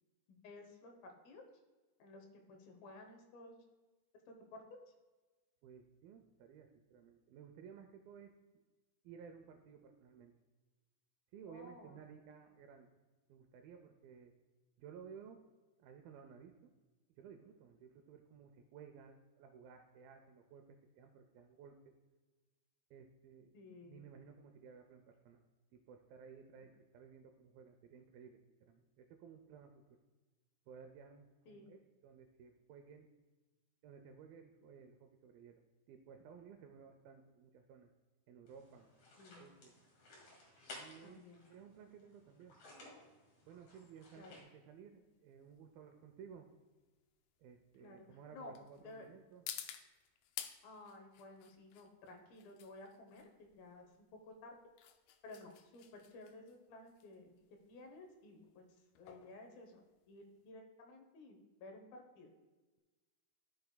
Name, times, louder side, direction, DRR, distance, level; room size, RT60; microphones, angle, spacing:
voice 1, 0.3-1.4 2.0-3.6 4.3-4.8 11.5-12.0 23.5-24.0 31.5-31.7 39.2-39.5 41.0-41.4 44.2-44.4 44.9-45.0 47.8-48.5 48.8-49.1 50.6-54.6 55.2-57.3 57.7-58.7 59.0-62.3, left 2 dB, 75° left, 3 dB, 2.5 m, -55 dB
voice 2, 5.6-8.3 9.0-10.3 11.3-12.9 13.3-14.3 14.8-15.4 15.8-16.7 17.1-21.9 22.9-23.5 23.8-25.4 25.7-30.0 30.7-33.1 33.8-37.9 38.3-38.9 39.3-39.8 40.7-42.6 43.5-46.5 47.4-49.4, right 7 dB, 85° right, 5 dB, 2.1 m, -57 dB
sound 1, 38.5-44.4, left 2 dB, 50° left, 3.0 m, -57 dB
sound 2, 43.8-60.5, left 11 dB, 90° left, 2.0 m, -54 dB
13.5 x 6.5 x 2.2 m, 1.3 s
omnidirectional pair, 4.7 m